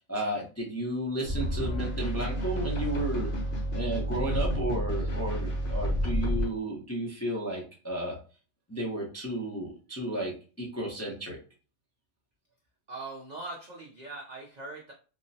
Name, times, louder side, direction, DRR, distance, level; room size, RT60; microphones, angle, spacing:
voice 1, 0.0-3.3 3.7-8.1 8.7-11.4, right 1 dB, 20° left, -2 dB, 0.4 m, -33 dB
sound 1, 1.2-6.5, equal, 45° left, 0.8 m, -30 dB
voice 2, 12.9-14.9, right 2 dB, 60° right, -1 dB, 0.4 m, -41 dB
3.7 x 2.0 x 2.6 m, 0.37 s
omnidirectional pair, 1.4 m